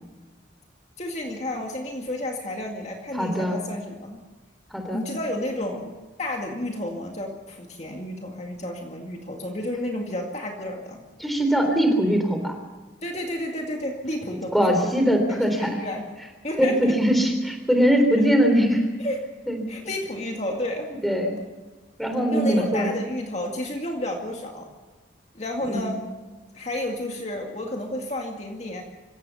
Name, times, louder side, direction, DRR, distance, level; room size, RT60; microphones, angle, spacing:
voice 1, 1.0-4.2 4.9-11.0 13.0-16.0 16.4-16.9 19.0-19.2 19.7-20.9 22.3-24.7 25.3-26.0 26.5-28.8, left 1 dB, 35° left, 1 dB, 2.2 m, -31 dB
voice 2, 3.1-3.6 4.7-5.0 11.2-12.5 14.5-15.8 16.6-18.8 19.5-19.6 21.0-21.3 22.0-23.0 25.7-25.9, equal, ahead, 4 dB, 3.5 m, -21 dB
25.5 x 16.0 x 7.0 m, 1.3 s
head